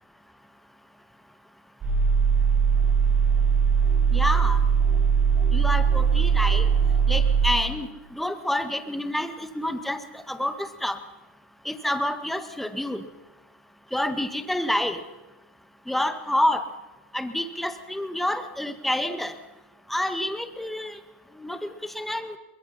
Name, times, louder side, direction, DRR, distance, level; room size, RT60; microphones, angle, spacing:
sound 1, 1.8-7.5, right 6 dB, 25° right, 6.0 m, -20 dB
voice 1, 4.1-4.6 5.5-6.7 7.1-11.0 11.7-13.0 13.9-15.0 15.9-16.6 17.1-19.3 19.9-21.0 21.4-22.4, left 1 dB, ahead, 9 dB, 1.7 m, -28 dB
23.0 x 22.0 x 5.8 m, 1.0 s
supercardioid pair, 125°, 7 cm